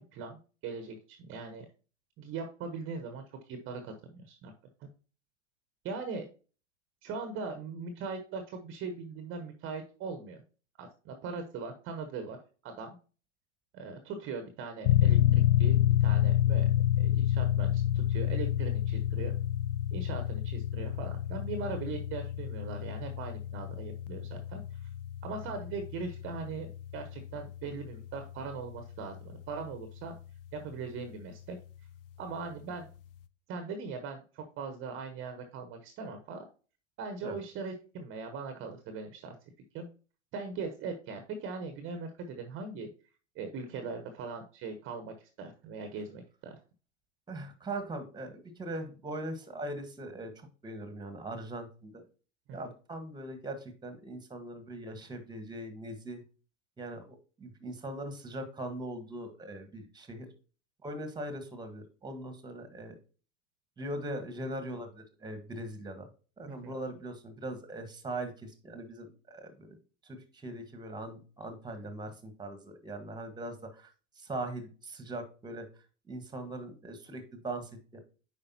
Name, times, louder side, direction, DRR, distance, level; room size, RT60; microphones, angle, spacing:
voice 1, 0.0-1.7 2.2-4.5 4.8-4.9 5.8-6.3 7.0-10.4 10.8-12.4 12.6-13.0 13.7-16.7 17.0-19.4 19.9-24.9 25.2-30.1 30.5-31.6 32.2-32.9 33.5-36.4 37.0-39.4 39.7-39.9 40.3-42.9 43.3-46.6 52.5-52.6 66.5-66.7, right 4 dB, 30° right, 7 dB, 1.0 m, -40 dB
sound 1, 14.8-29.3, left 12 dB, 45° left, 0.5 m, -29 dB
voice 2, 47.3-52.0 52.5-56.2 56.8-60.3 60.8-62.9 63.8-66.1 66.4-69.8 70.0-75.7 76.1-78.0, right 1 dB, 10° right, 8 dB, 1.4 m, -41 dB
8.9 x 5.2 x 2.8 m, 0.36 s
figure-of-eight pair, 90°, 40 cm